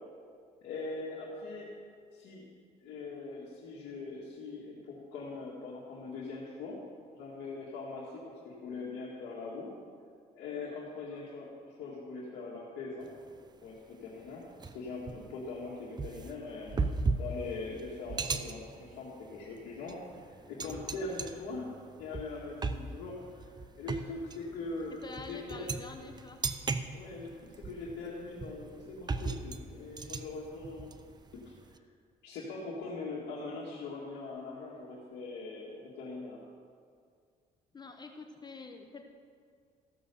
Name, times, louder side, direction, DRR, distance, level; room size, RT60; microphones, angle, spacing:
voice 1, 0.6-1.7 2.1-2.5 2.8-6.8 7.1-9.7 10.3-13.1 13.6-16.8 17.2-21.7 22.0-23.5 23.8-25.7 26.9-30.9 31.4-31.8 32.2-36.4, left 3 dB, 80° left, -6 dB, 2.0 m, -41 dB
sound 1, 13.0-13.3 13.8-13.9 14.6-31.8, right 4 dB, 25° right, 0.6 m, -37 dB
voice 2, 25.0-26.4 37.7-39.1, left 3 dB, 25° left, 5 dB, 0.9 m, -46 dB
15.0 x 6.3 x 6.9 m, 2.2 s
cardioid pair, 110°, 17 cm